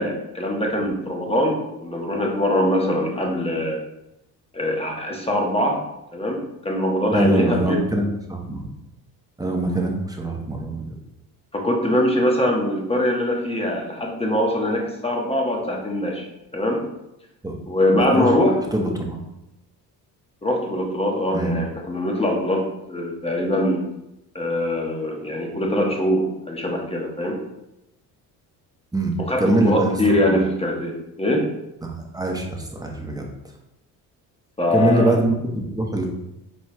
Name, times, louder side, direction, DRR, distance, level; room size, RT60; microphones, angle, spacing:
voice 1, 0.0-3.8 4.5-5.8 6.1-7.8 11.5-16.3 16.5-16.9 17.7-18.6 20.4-23.8 24.3-27.4 29.3-31.5 34.6-35.2, left 1 dB, 15° left, 0 dB, 1.1 m, -22 dB
voice 2, 7.1-8.7 9.4-10.9 17.4-17.5 17.9-18.3 18.7-19.2 21.3-21.5 28.9-30.0 30.3-30.4 31.8-33.3 34.7-36.1, right 1 dB, 10° right, 1 dB, 1.0 m, -23 dB
4.4 x 4.3 x 2.3 m, 0.89 s
hypercardioid pair, 60°, 44 cm